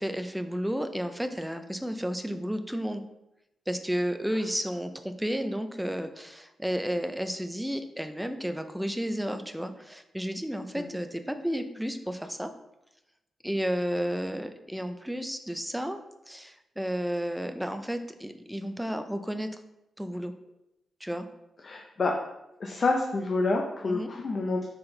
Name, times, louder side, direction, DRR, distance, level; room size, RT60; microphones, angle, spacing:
voice 1, 0.0-3.0 3.7-12.5 13.4-16.0 16.3-19.5 20.0-20.3 21.0-21.2 23.8-24.1, equal, ahead, 7 dB, 0.4 m, -32 dB
voice 2, 21.6-22.1 22.6-24.6, left 3 dB, 40° left, 1 dB, 0.6 m, -28 dB
5.8 x 4.3 x 3.8 m, 0.89 s
wide cardioid pair, 135°, 0 cm